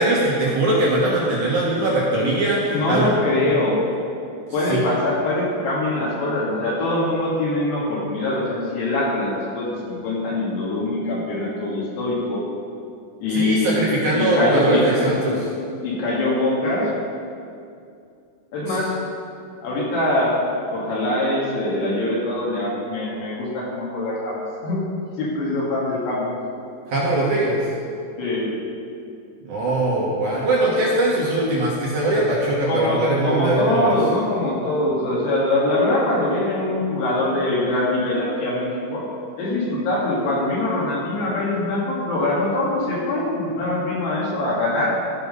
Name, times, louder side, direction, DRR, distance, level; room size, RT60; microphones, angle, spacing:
voice 1, 0.0-3.1 3.4-3.5 4.7-4.9 13.3-15.4 18.7-18.8 26.9-27.6 29.5-33.9, right 1 dB, 65° right, -5 dB, 1.9 m, -21 dB
voice 2, 2.7-3.8 4.5-12.4 13.2-13.8 14.1-15.4 15.8-16.9 18.5-18.9 19.6-20.4 20.7-24.8 25.2-26.3 28.2-28.5 32.7-39.0 39.4-44.9, left 1 dB, 70° left, -6 dB, 3.7 m, -23 dB
14.0 x 5.7 x 5.3 m, 2.4 s
omnidirectional pair, 5.0 m